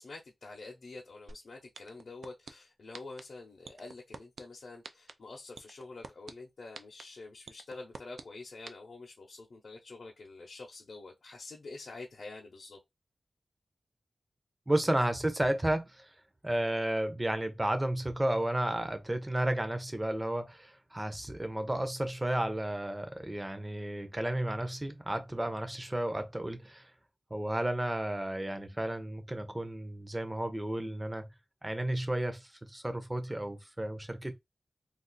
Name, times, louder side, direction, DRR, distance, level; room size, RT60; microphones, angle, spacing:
voice 1, 0.0-12.8, left 3 dB, 65° left, 0.6 m, -47 dB
sound 1, 1.3-1.4 1.7-2.5 2.9-3.2 3.6-4.4 4.8-5.1 5.6-6.3 6.7-7.0 7.5-8.2 8.7-8.8, right 4 dB, 85° right, 0.4 m, -44 dB
voice 2, 14.7-16.1 16.4-26.9 27.3-31.3 31.6-34.3, right 1 dB, 15° right, 0.6 m, -32 dB
2.4 x 2.4 x 3.9 m
wide cardioid pair, 115°, 0 cm